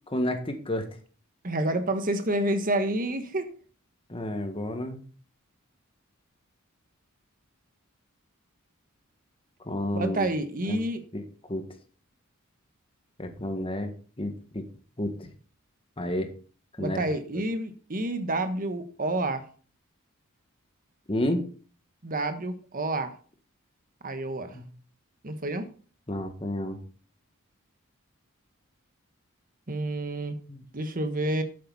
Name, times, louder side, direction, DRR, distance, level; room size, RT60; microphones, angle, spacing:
voice 1, 0.1-0.9 4.1-5.0 9.7-10.3 10.7-10.8 11.1-11.2 11.5-11.6 13.2-13.9 14.2-14.6 15.0-15.3 16.0-16.3 16.8-17.0 17.3-17.4 21.1-21.4 24.5-24.6 26.1-26.8 30.5-30.6, left 1 dB, 25° left, 6 dB, 1.7 m, -30 dB
voice 2, 1.4-3.5 9.9-11.0 16.8-19.4 22.0-23.2 24.0-24.6 25.2-25.7 29.7-30.4 30.7-31.4, right 1 dB, 40° right, 9 dB, 1.3 m, -29 dB
11.5 x 8.5 x 4.1 m, 0.40 s
head